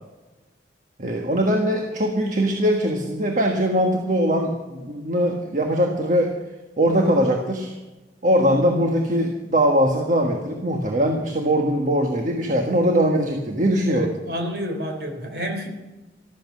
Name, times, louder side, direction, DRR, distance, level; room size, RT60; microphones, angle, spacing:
voice 1, 1.0-6.3 6.8-7.7 8.2-14.1, equal, 45° right, 2 dB, 1.5 m, -21 dB
voice 2, 13.9-15.7, equal, 60° right, 4 dB, 3.7 m, -29 dB
14.0 x 13.5 x 6.3 m, 1.1 s
head